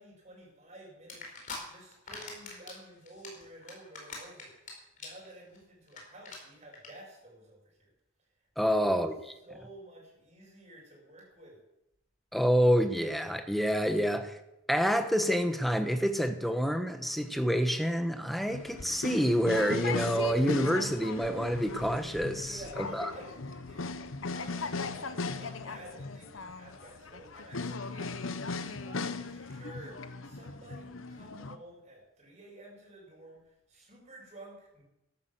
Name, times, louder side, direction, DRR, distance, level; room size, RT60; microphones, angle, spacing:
voice 1, 0.0-7.9 8.6-9.1 9.4-11.6 22.4-34.8, right 1 dB, 35° right, -3 dB, 7.3 m, -51 dB
sound 1, 1.1-1.6 1.9-2.8 3.1-4.7 5.0-5.3 5.5-5.6 5.9-6.0 6.2-6.4 6.7-6.9, left 4 dB, 40° left, 4.4 m, -42 dB
voice 2, 8.6-9.1 12.3-14.4 14.7-23.1, equal, ahead, 7 dB, 1.1 m, -28 dB
sound 2, 18.5-31.6, left 4 dB, 90° left, 1.0 m, -38 dB
12.5 x 12.0 x 7.8 m, 0.90 s
head